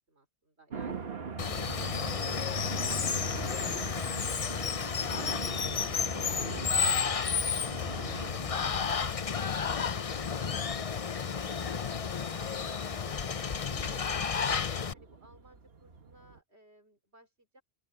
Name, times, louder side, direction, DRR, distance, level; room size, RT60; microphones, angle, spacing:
voice 1, 0.1-1.1 1.4-3.9 4.3-7.1 7.4-17.6, right 1 dB, 80° right, 5.0 m, -58 dB
sound 1, 0.7-16.4, right 5 dB, 65° right, 1.6 m, -43 dB
Water, 1.4-14.9, left 6 dB, 40° left, 0.6 m, -32 dB
open air
omnidirectional pair, 1.1 m